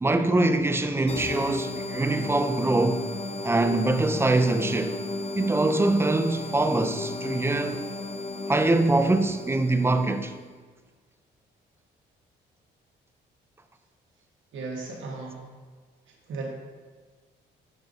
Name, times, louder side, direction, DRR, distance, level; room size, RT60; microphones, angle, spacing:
voice 1, 0.0-3.0 3.4-5.0 5.4-7.8 8.5-10.3, right 2 dB, 10° right, 0.4 m, -23 dB
sound 1, 1.1-10.4, left 2 dB, 30° left, 0.7 m, -34 dB
voice 2, 14.5-15.4 16.3-16.5, right 3 dB, 75° right, 1.5 m, -35 dB
6.9 x 6.1 x 2.7 m
cardioid pair, 90°, 20 cm